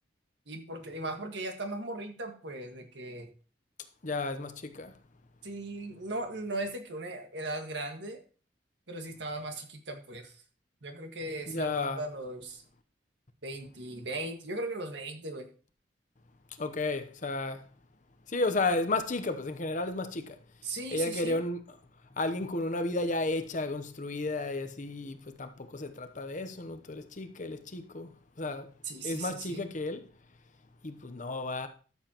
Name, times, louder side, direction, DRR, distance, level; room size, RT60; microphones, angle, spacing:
voice 1, 0.5-3.3 5.4-8.2 8.9-10.3 10.8-12.6 13.4-15.5 20.6-21.4 28.8-29.6, right 2 dB, 70° right, 1.8 m, -38 dB
voice 2, 4.0-4.9 11.5-12.0 16.6-17.7 18.3-20.4 20.9-21.6 22.2-28.7 29.0-30.1 30.8-31.7, left 2 dB, 45° left, 0.9 m, -33 dB
13.0 x 7.3 x 3.0 m
head